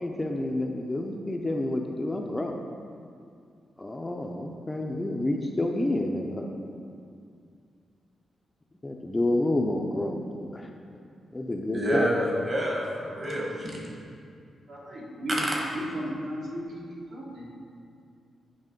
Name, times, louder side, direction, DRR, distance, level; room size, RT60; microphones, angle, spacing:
voice 1, 0.0-2.6 3.8-6.5 8.8-10.7 11.3-12.1, left 1 dB, 10° left, 2 dB, 0.4 m, -29 dB
voice 2, 11.7-13.8 15.4-15.5, equal, 30° right, -3 dB, 1.2 m, -28 dB
voice 3, 14.7-15.3 15.7-17.5, equal, 65° right, -4 dB, 1.4 m, -35 dB
8.8 x 3.4 x 5.1 m, 2.3 s
wide cardioid pair, 170°, 0 cm